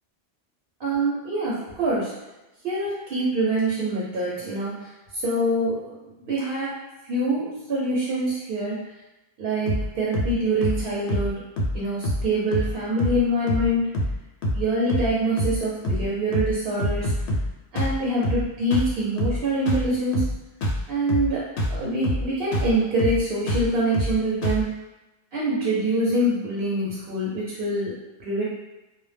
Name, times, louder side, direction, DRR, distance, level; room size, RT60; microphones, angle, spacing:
voice 1, 0.8-2.1 2.6-5.9 6.2-6.8 7.1-8.8 9.4-11.4 11.7-13.9 14.5-17.1 17.7-20.3 20.9-21.4 21.7-24.7 25.3-28.4, right 1 dB, 65° right, -6 dB, 0.8 m, -25 dB
sound 1, 9.7-9.9 10.1-10.3 10.6-10.8 11.1-11.3 11.6-11.8 12.0-12.3 12.5-12.7 13.0-13.2 13.5-13.7 13.9-14.2 14.4-14.6 14.9-15.1 15.4-15.6 15.8-16.1 16.3-16.5 16.8-17.5 17.7-18.0 18.2-18.4 18.7-18.9 19.2-19.4 19.7-19.9 20.1-20.3 20.6-20.8 21.1-21.3 21.6-21.8 22.0-22.3 22.5-22.7 23.0-23.2 23.5-23.7 23.9-24.2 24.4-24.6, equal, 85° left, 0.8 m, -25 dB
2.1 x 2.0 x 3.2 m, 1.0 s
omnidirectional pair, 1.1 m